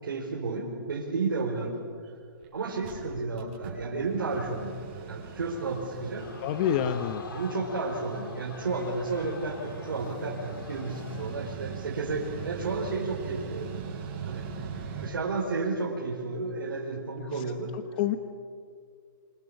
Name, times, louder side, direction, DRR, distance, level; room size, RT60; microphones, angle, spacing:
voice 1, 0.0-1.8 2.5-4.7 5.1-6.3 7.3-13.8 14.3-14.5 15.0-17.7, right 3 dB, 85° right, -3 dB, 5.1 m, -32 dB
Mechanical fan, 2.0-2.1 2.4-2.5 2.7-15.1, right 6 dB, 35° right, 6.7 m, -41 dB
Crowd, 6.2-11.6 12.0-12.1, left 4 dB, 80° left, 3.3 m, -46 dB
voice 2, 6.4-7.2 17.3-17.4 17.7-18.2, left 9 dB, 25° left, 10 dB, 1.0 m, -28 dB
27.5 x 26.5 x 7.3 m, 2.2 s
hypercardioid pair, 165°, 11 cm